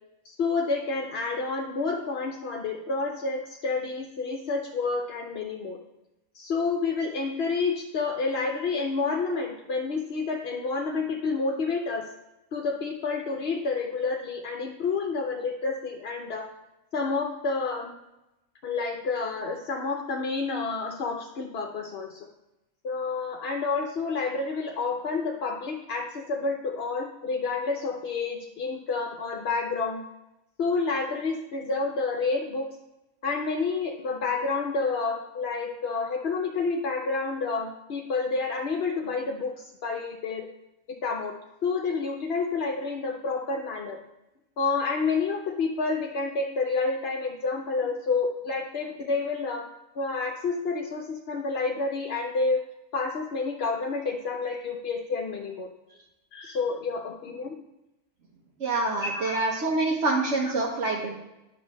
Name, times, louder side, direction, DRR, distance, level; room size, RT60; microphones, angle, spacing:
voice 1, 0.2-5.8 6.3-12.1 12.5-16.5 16.9-17.9 18.6-22.3 22.8-30.0 30.6-32.7 33.2-40.5 41.0-41.3 41.6-44.0 44.6-49.7 49.9-52.6 52.9-55.7 56.3-57.6 59.0-59.5, left 4 dB, 60° left, 1 dB, 0.9 m, -29 dB
voice 2, 58.6-61.2, right 2 dB, 65° right, -2 dB, 1.3 m, -26 dB
9.2 x 3.3 x 6.2 m, 0.95 s
omnidirectional pair, 1.3 m